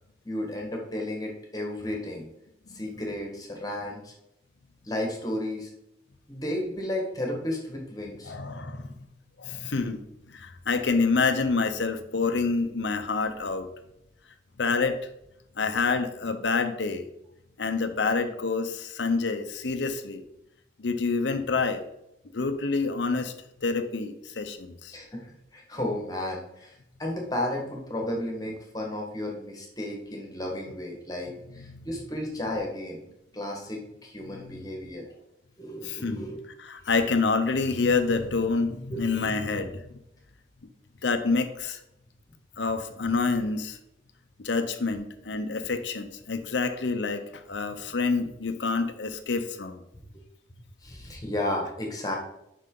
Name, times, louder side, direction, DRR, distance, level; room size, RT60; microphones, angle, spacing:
voice 1, 0.2-2.3 2.7-4.1 4.8-5.7 6.3-8.3 24.9-26.7 27.0-33.0 33.3-35.0 35.6-36.4 38.9-39.5 50.8-52.2, left 1 dB, 20° left, 0 dB, 1.4 m, -33 dB
voice 2, 8.3-9.0 9.4-10.0 10.3-13.7 14.6-15.0 15.6-17.0 17.6-20.2 20.8-21.8 22.3-23.3 23.6-24.9 31.5-31.9 34.2-34.7 35.8-36.3 36.6-39.8 41.0-41.8 42.6-43.8 44.4-49.8, left 4 dB, 90° left, 7 dB, 0.7 m, -27 dB
7.6 x 5.6 x 3.8 m, 0.82 s
head